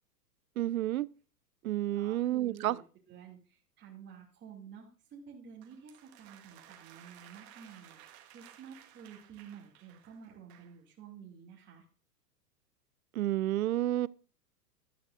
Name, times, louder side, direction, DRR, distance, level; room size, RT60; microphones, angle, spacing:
voice 1, 0.6-1.1 1.6-2.8 13.2-14.1, right 14 dB, 60° right, 0.5 m, -30 dB
voice 2, 1.9-2.8 3.1-11.8, right 7 dB, 20° right, 2.6 m, -51 dB
sound 1, 5.6-10.8, right 11 dB, 40° right, 1.7 m, -57 dB
13.5 x 12.0 x 2.6 m
figure-of-eight pair, 105°, 49 cm